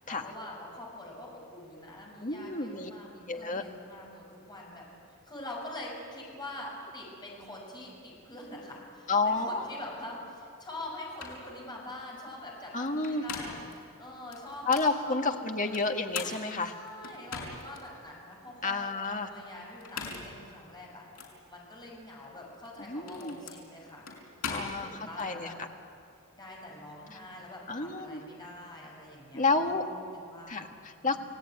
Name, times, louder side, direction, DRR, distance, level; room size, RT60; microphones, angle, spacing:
voice 1, 0.0-4.8 5.2-15.9 16.7-21.0 21.5-25.6 26.3-30.7 31.0-31.2, left 1 dB, 20° left, -2 dB, 6.8 m, -45 dB
voice 2, 2.2-2.9 3.3-3.6 9.1-9.6 12.7-13.2 14.7-16.7 18.6-19.3 22.8-23.4 24.5-25.7 27.7-28.2 29.3-29.8 30.5-31.2, left 3 dB, 35° left, 4 dB, 1.8 m, -30 dB
sound 1, 10.8-10.9 11.2-11.4 12.9-13.7 14.3-14.9 15.7-17.8 18.3-18.4 19.7-20.4 21.1-21.3 22.5-25.3, left 5 dB, 85° left, 5.4 m, -40 dB
29.0 x 18.5 x 9.4 m, 2.5 s
head